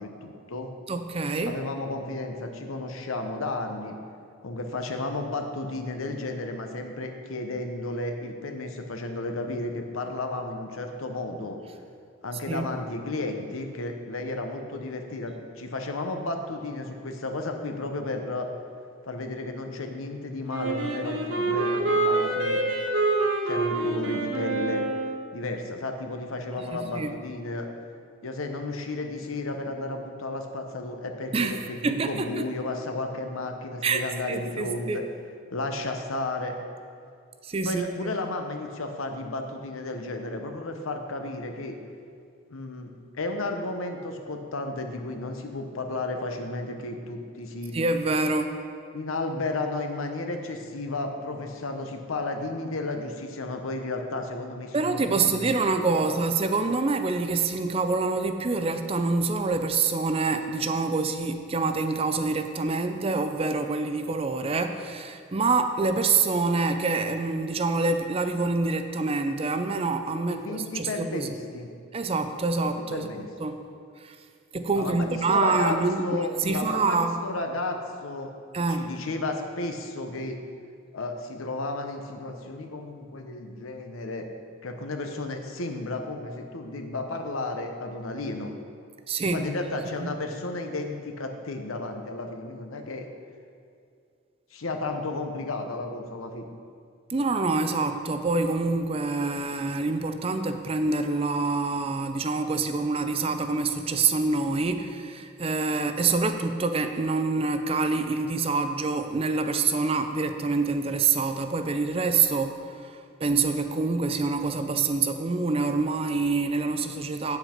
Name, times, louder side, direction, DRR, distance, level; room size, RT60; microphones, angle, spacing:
voice 1, 0.0-0.7 1.4-4.0 4.4-11.6 12.2-18.5 19.1-22.6 23.4-24.8 25.3-27.7 28.2-35.0 35.5-36.6 37.6-41.8 42.5-42.9 43.2-47.8 48.9-55.5 55.9-56.2 70.3-71.7 72.6-73.3 74.7-78.3 78.7-80.4 80.9-84.3 84.6-88.6 89.3-93.1 94.5-96.5, left 2 dB, 90° left, 5 dB, 0.8 m, -33 dB
voice 2, 0.9-1.6 12.5-12.7 26.6-27.1 31.3-32.5 33.8-34.0 34.3-35.0 37.4-38.1 47.7-48.6 54.7-71.3 71.9-73.1 73.4-73.6 74.0-74.2 74.5-77.2 78.5-78.9 89.1-89.5 90.0-90.1 97.1-117.4, right 3 dB, 30° right, 8 dB, 0.4 m, -26 dB
Wind instrument woodwind instrument, 20.5-25.2, right 2 dB, 65° right, 1.2 m, -26 dB
8.1 x 8.0 x 4.4 m, 2.3 s
head